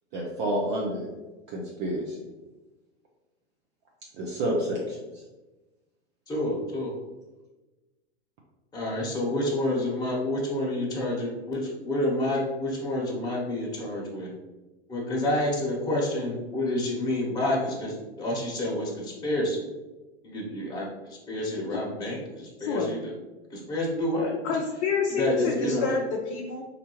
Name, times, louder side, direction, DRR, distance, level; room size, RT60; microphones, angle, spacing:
voice 1, 0.1-1.1 1.5-2.2 4.2-5.2, right 1 dB, 35° right, -2 dB, 0.6 m, -29 dB
voice 2, 6.3-6.9 8.7-14.3 14.9-19.6 20.2-20.9 21.3-23.0 23.5-24.3 25.1-25.9, left 1 dB, 10° left, -4 dB, 1.1 m, -28 dB
voice 3, 24.4-26.6, left 5 dB, 30° left, -1 dB, 0.5 m, -28 dB
4.3 x 2.7 x 3.0 m, 1.1 s
figure-of-eight pair, 100°, 33 cm